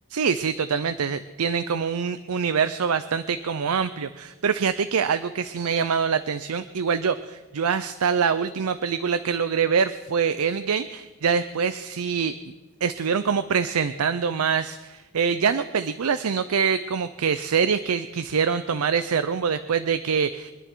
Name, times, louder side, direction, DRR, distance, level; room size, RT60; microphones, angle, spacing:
voice 1, 0.1-12.3 12.8-20.5, right 6 dB, 85° right, 12 dB, 0.5 m, -24 dB
24.0 x 10.5 x 4.6 m, 1.2 s
head